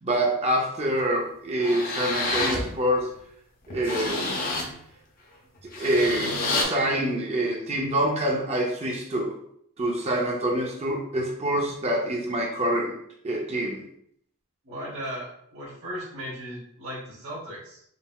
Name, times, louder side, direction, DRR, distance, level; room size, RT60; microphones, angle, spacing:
voice 1, 0.0-3.1 3.7-4.4 5.6-9.4 9.8-13.0 13.2-13.8, right 1 dB, 30° right, -1 dB, 0.5 m, -26 dB
sound 1, 1.0-1.1 1.6-2.7 3.1-3.2 3.7-4.7 5.6-6.6, left 2 dB, 40° left, 0.8 m, -28 dB
voice 2, 14.6-17.8, equal, 60° right, -6 dB, 1.1 m, -37 dB
3.9 x 3.8 x 2.2 m, 0.69 s
head